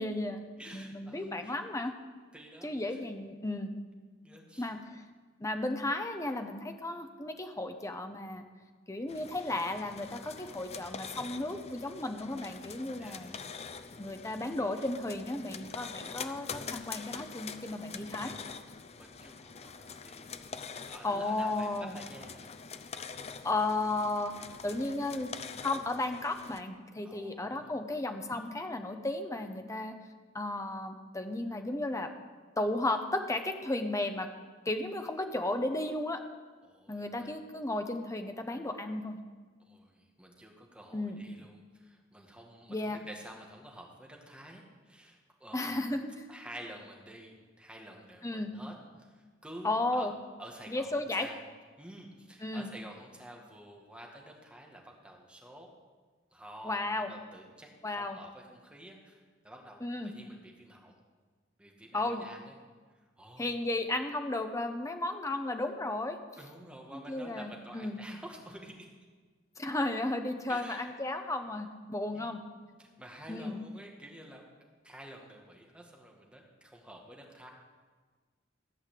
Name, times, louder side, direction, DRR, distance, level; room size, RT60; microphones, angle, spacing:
voice 1, 0.0-0.4 0.7-1.9 2.6-3.7 4.6-5.0 5.4-8.4 8.9-13.3 14.0-18.3 21.0-22.0 23.4-24.3 24.6-25.3 25.6-29.9 30.3-32.1 32.6-34.3 34.6-36.2 36.9-39.2 40.9-41.3 42.7-43.0 45.5-46.0 48.2-48.5 49.6-50.1 50.7-51.3 52.4-52.7 56.6-57.1 57.8-58.2 59.8-60.1 61.9-62.2 63.4-66.2 66.9-68.0 69.6-72.4 73.3-73.6, left 2 dB, 15° left, 6 dB, 1.0 m, -34 dB
voice 2, 0.6-1.5 2.3-3.0 4.2-4.7 12.9-13.7 17.9-18.6 19.0-20.3 20.9-22.5 27.0-27.8 36.6-37.4 39.6-45.8 46.3-50.1 50.4-51.4 51.8-55.7 56.3-61.0 61.6-62.6 63.2-63.5 66.4-68.9 70.5-70.9 72.1-72.3 72.8-74.4 74.8-77.5, right 1 dB, 5° right, 0 dB, 1.8 m, -50 dB
sound 1, 9.1-26.6, left 5 dB, 35° left, 0.6 m, -45 dB
14.5 x 5.7 x 8.5 m, 1.5 s
head